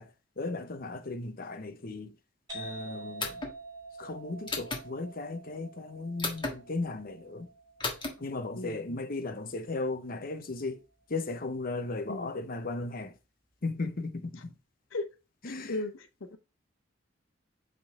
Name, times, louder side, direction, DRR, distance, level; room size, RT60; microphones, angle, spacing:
voice 1, 0.0-2.1 2.5-3.4 4.0-7.5 8.2-10.8 11.1-13.2 13.6-14.6 15.4-15.8, left 3 dB, 50° left, 0.8 m, -36 dB
sound 1, 2.5-9.9, right 2 dB, 20° right, 3.0 m, -47 dB
sound 2, 3.2-3.5 4.5-4.8 6.2-6.5 7.8-8.1, left 3 dB, 25° left, 1.4 m, -33 dB
voice 2, 8.6-9.0 12.1-12.3 14.9-15.1 15.5-16.4, left 2 dB, 90° left, 0.7 m, -37 dB
7.8 x 3.8 x 3.5 m
head